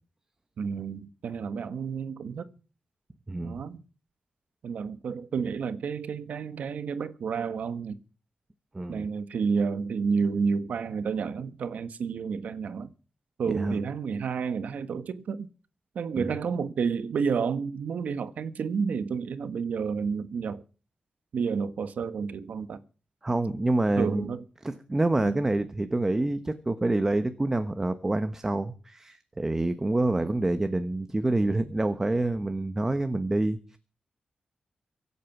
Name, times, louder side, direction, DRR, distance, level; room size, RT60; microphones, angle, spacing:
voice 1, 0.6-2.5 3.4-3.8 4.6-8.0 8.9-12.9 13.4-15.5 15.9-20.6 21.3-22.8 24.0-24.4 25.2-25.4, right 5 dB, 90° right, 1.3 m, -30 dB
voice 2, 3.3-3.6 8.7-9.1 13.5-13.8 16.1-16.3 23.2-24.3 24.6-33.8, right 2 dB, 20° right, 1.0 m, -27 dB
24.0 x 8.5 x 6.0 m
wide cardioid pair, 150°, 3 cm